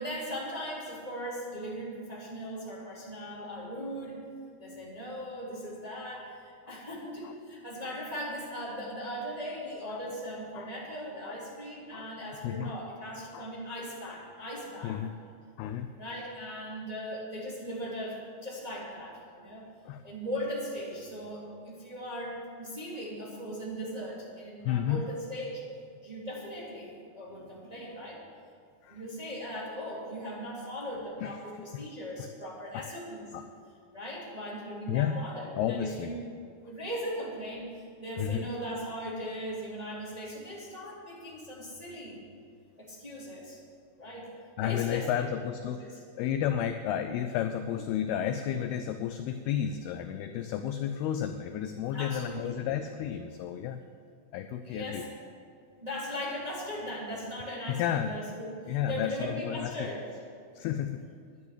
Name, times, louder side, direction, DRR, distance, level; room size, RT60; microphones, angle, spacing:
voice 1, 0.0-4.2 4.6-15.0 15.9-19.7 20.0-25.6 26.0-28.2 28.9-33.3 33.9-36.2 36.7-42.2 42.8-43.6 44.0-44.3 44.6-45.3 45.6-46.0 51.9-52.6 54.6-55.1 55.8-60.0, equal, 10° right, -6 dB, 2.2 m, -39 dB
voice 2, 12.4-12.8 13.3-13.5 14.0-14.1 14.8-15.1 15.6-15.9 19.9-20.0 24.7-25.0 28.8-29.0 31.2-31.3 31.7-31.9 32.7-32.9 33.3-33.4 34.9-35.2 35.6-36.1 38.2-38.5 44.6-45.8 46.1-53.8 54.3-55.1 57.7-58.1 58.7-59.9 60.5-61.0, left 10 dB, 85° left, 8 dB, 2.3 m, -32 dB
11.0 x 10.5 x 8.3 m, 2.3 s
omnidirectional pair, 5.1 m